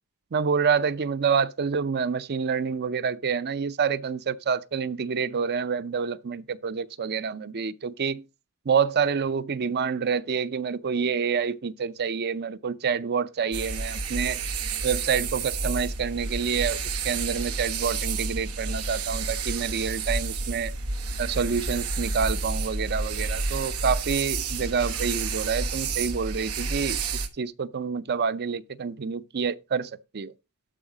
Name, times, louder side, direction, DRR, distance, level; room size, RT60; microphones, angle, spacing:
voice 1, 0.3-8.2 8.7-14.4 14.8-20.7 21.2-30.3, right 6 dB, 50° right, 0.5 m, -27 dB
sound 1, 13.5-27.3, right 4 dB, 90° right, 1.3 m, -30 dB
12.5 x 4.8 x 5.0 m
head